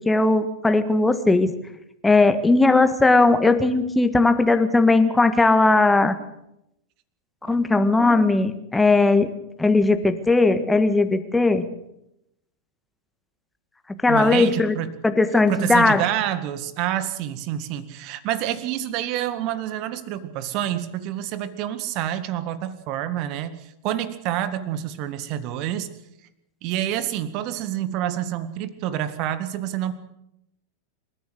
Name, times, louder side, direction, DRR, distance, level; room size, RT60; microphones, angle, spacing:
voice 1, 0.1-1.5 2.0-6.2 7.5-9.3 9.6-11.6 14.0-14.7 15.0-16.0, left 3 dB, 10° left, 9 dB, 1.7 m, -18 dB
voice 2, 14.1-14.9 15.5-25.9 26.6-29.9, right 11 dB, 40° right, 13 dB, 1.9 m, -28 dB
27.5 x 14.0 x 8.1 m, 0.83 s
figure-of-eight pair, 90°, 0 cm